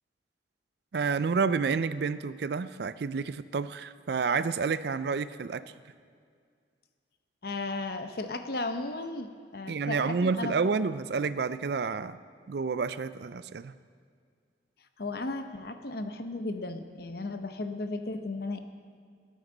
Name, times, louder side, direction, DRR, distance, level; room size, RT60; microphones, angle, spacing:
voice 1, 0.9-5.6 9.7-12.2 12.5-13.7, right 5 dB, 60° right, 15 dB, 0.4 m, -29 dB
voice 2, 7.4-10.5 15.0-18.6, left 2 dB, 55° left, 8 dB, 0.7 m, -35 dB
18.0 x 9.2 x 3.9 m, 2.1 s
head